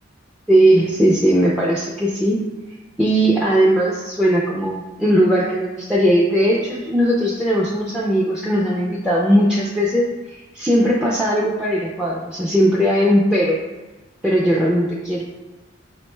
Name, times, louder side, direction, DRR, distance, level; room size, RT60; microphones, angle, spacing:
voice 1, 0.5-2.4 3.0-13.6 14.2-15.2, equal, 5° right, -6 dB, 0.4 m, -18 dB
4.9 x 2.1 x 3.1 m, 1.1 s
head